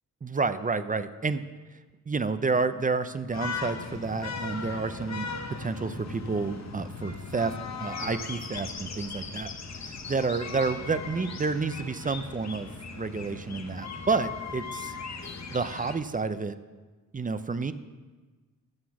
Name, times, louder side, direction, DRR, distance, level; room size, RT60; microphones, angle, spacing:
voice 1, 0.2-1.4 2.1-5.3 5.6-7.5 7.8-9.5 9.8-12.7 13.0-14.9 15.5-16.6 17.1-17.7, right 4 dB, 25° right, 12 dB, 0.4 m, -30 dB
sound 1, 3.3-15.9, left 4 dB, 50° left, 1.0 m, -38 dB
13.0 x 6.0 x 7.1 m, 1.3 s
wide cardioid pair, 150°, 36 cm